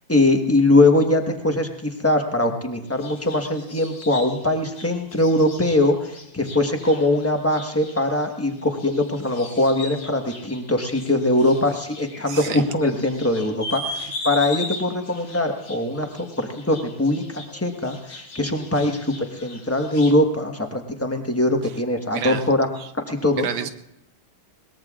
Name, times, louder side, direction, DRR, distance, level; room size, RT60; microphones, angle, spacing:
voice 1, 0.1-19.1 19.4-22.7 22.9-23.5, left 1 dB, 10° left, 4 dB, 0.9 m, -21 dB
sound 1, 2.8-20.1, left 2 dB, 60° left, 3.0 m, -39 dB
voice 2, 12.3-12.7 14.0-14.1 21.6-21.7 22.1-22.9 23.4-23.7, right 8 dB, 75° right, 9 dB, 1.6 m, -31 dB
22.0 x 20.0 x 2.5 m, 0.81 s
omnidirectional pair, 2.2 m